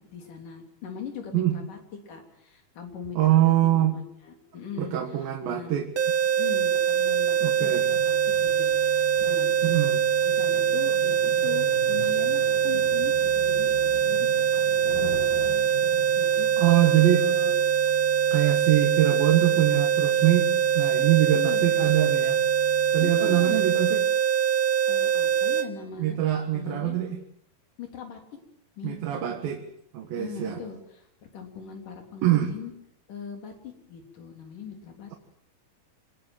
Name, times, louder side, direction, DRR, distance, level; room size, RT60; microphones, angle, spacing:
voice 1, 0.1-1.8 2.1-5.8 6.4-8.2 8.4-9.6 10.2-13.7 14.1-16.5 17.0-17.6 21.3-21.7 23.0-24.0 24.9-26.2 26.5-27.0 27.8-28.2 28.8-29.4 30.2-31.1 31.3-32.7 33.1-35.2, left 6 dB, 65° left, 3 dB, 5.1 m, -40 dB
voice 2, 3.2-4.0 4.8-5.9 7.4-7.8 9.6-10.0 16.6-17.2 18.3-20.5 20.7-22.4 22.9-24.0 26.0-27.2 28.8-29.6 29.9-30.6 32.2-32.5, right 13 dB, 80° right, 3 dB, 3.4 m, -23 dB
sound 1, 6.0-25.7, right 9 dB, 60° right, 1.4 m, -23 dB
sound 2, 7.1-16.5, left 5 dB, 90° left, 4.9 m, -44 dB
sound 3, 7.7-23.8, left 15 dB, 50° left, 3.2 m, -45 dB
26.5 x 20.0 x 7.9 m, 0.75 s
omnidirectional pair, 4.0 m